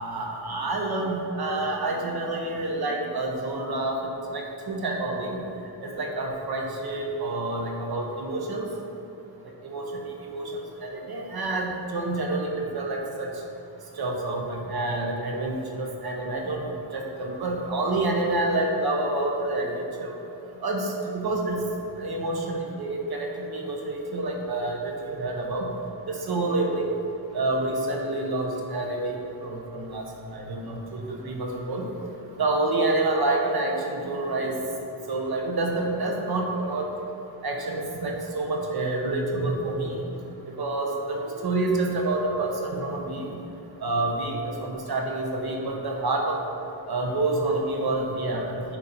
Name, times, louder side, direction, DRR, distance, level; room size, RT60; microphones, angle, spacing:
voice 1, 0.0-4.0 4.3-5.4 5.8-8.7 9.6-9.8 10.2-13.3 14.0-20.1 20.6-21.6 22.0-25.7 26.1-26.9 27.3-30.0 30.3-31.9 32.4-34.6 35.1-36.9 37.4-40.1 40.6-43.4 43.8-46.4 46.9-48.8, right 2 dB, 65° right, 1 dB, 1.2 m, -28 dB
10.0 x 4.1 x 4.3 m, 2.9 s
wide cardioid pair, 120°, 41 cm